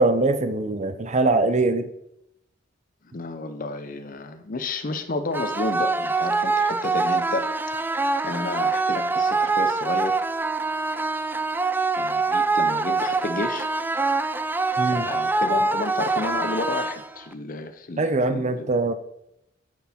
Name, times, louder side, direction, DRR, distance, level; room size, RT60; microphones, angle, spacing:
voice 1, 0.0-1.9 14.8-15.1 18.0-18.9, right 2 dB, 35° right, 10 dB, 0.7 m, -22 dB
voice 2, 3.1-7.5 8.2-10.2 12.0-13.7 14.9-18.7, left 2 dB, 45° left, 8 dB, 0.7 m, -31 dB
sound 1, 5.3-17.3, right 3 dB, 10° right, 0.3 m, -24 dB
9.3 x 6.3 x 4.3 m, 0.80 s
head